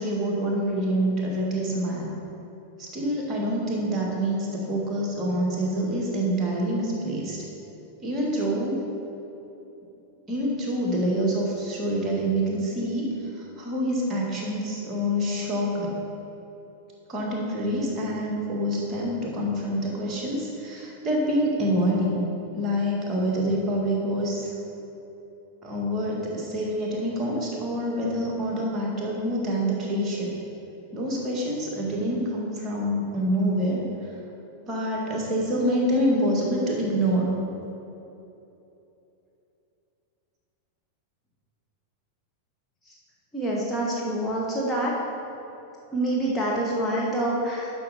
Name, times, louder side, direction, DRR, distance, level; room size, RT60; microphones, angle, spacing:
voice 1, 0.0-2.1 2.8-7.4 8.0-8.8 10.3-16.0 17.1-22.2 22.5-24.5 25.6-30.3 30.9-33.8 34.7-37.3, equal, 25° right, -3 dB, 1.9 m, -26 dB
voice 2, 43.3-44.9 45.9-47.7, right 1 dB, 5° left, -5 dB, 1.2 m, -26 dB
10.5 x 6.0 x 4.2 m, 3.0 s
figure-of-eight pair, 90°, 0 cm